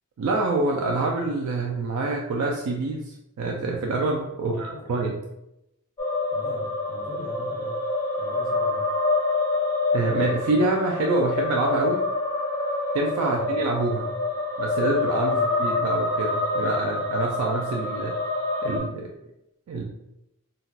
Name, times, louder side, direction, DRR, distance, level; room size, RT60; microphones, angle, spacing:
voice 1, 0.2-5.2 9.9-12.0 12.9-14.1 14.6-18.2 18.6-19.1 19.7-19.8, right 2 dB, 80° right, 1 dB, 0.4 m, -26 dB
voice 2, 4.4-5.0 6.3-7.7 8.2-8.8 13.3-13.5 15.3-15.6, equal, 45° right, -7 dB, 1.3 m, -41 dB
sound 1, 6.0-18.8, left 3 dB, 15° left, 0.7 m, -26 dB
2.3 x 2.2 x 3.9 m, 0.87 s
head